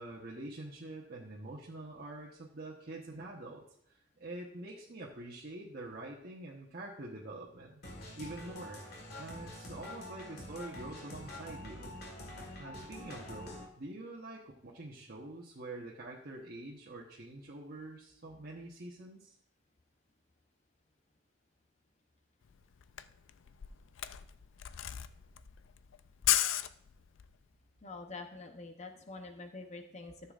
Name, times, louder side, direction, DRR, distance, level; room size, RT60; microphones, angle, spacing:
voice 1, 0.0-3.6 3.9-7.8 8.2-11.9 12.5-19.3, right 2 dB, 55° right, -4 dB, 1.0 m, -46 dB
sound 1, 7.8-13.7, left 1 dB, 55° left, 1.8 m, -46 dB
Camera, 22.5-22.6 22.8-27.3, left 12 dB, 80° left, 0.4 m, -34 dB
voice 2, 27.8-30.3, left 3 dB, 35° left, 5 dB, 0.7 m, -46 dB
13.5 x 6.9 x 2.5 m, 0.73 s
head